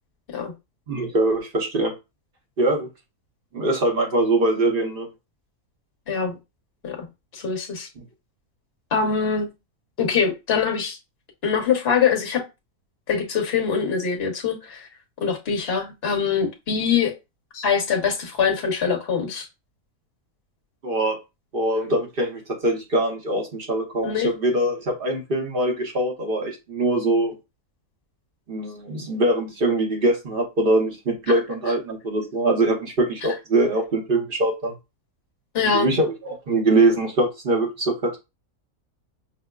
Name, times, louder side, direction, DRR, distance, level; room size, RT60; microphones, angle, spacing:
voice 1, 0.9-1.9 2.6-2.9 3.5-5.1 20.8-21.2 21.5-27.4 28.5-34.7 35.6-38.2, right 2 dB, 45° right, 0.9 m, -23 dB
voice 2, 6.1-6.4 6.8-7.1 7.3-7.9 8.9-9.5 10.0-11.0 11.4-12.4 13.1-14.9 15.2-17.1 17.5-19.5 24.0-24.3 35.5-35.9, left 6 dB, 45° left, 1.2 m, -23 dB
5.9 x 2.0 x 2.3 m
omnidirectional pair, 1.6 m